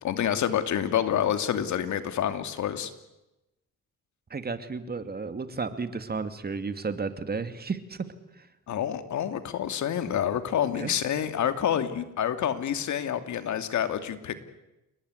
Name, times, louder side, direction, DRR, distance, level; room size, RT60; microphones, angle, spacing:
voice 1, 0.0-2.9 8.7-14.3, left 9 dB, 70° left, 9 dB, 2.8 m, -28 dB
voice 2, 4.3-8.1 10.8-10.9, right 4 dB, 30° right, 10 dB, 2.6 m, -33 dB
29.0 x 19.5 x 9.8 m, 0.96 s
cardioid pair, 90°, 30 cm